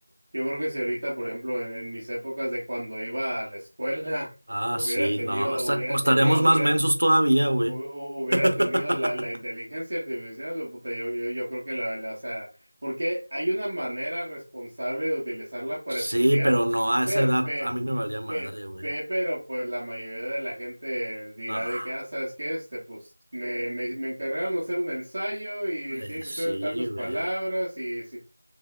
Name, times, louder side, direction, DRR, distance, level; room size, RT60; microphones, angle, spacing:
voice 1, 0.3-4.3 4.7-6.7 7.7-12.5 12.8-16.6 17.1-17.7 18.3-18.5 18.8-28.2, equal, 25° right, 0.8 m, -31 dB
voice 2, 4.5-7.8 8.3-9.3 15.9-18.8 21.5-21.9 25.9-27.2, right 1 dB, 60° right, 0.7 m, -24 dB
3.4 x 3.4 x 2.3 m
figure-of-eight pair, 180°, 0 cm